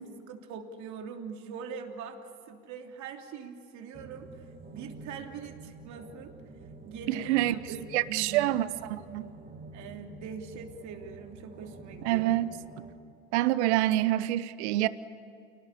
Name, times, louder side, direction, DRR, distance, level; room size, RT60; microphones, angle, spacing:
voice 1, 0.0-2.2 2.5-6.3 6.8-8.5 9.7-12.3, right 6 dB, 55° right, 4 dB, 3.2 m, -42 dB
sound 1, 3.9-12.9, right 3 dB, 30° right, 4.3 m, -48 dB
voice 2, 7.1-7.5 7.9-9.3 12.0-12.6 13.3-14.9, right 15 dB, 70° right, 16 dB, 1.1 m, -26 dB
29.5 x 19.0 x 8.6 m, 2.5 s
hypercardioid pair, 75°, 35 cm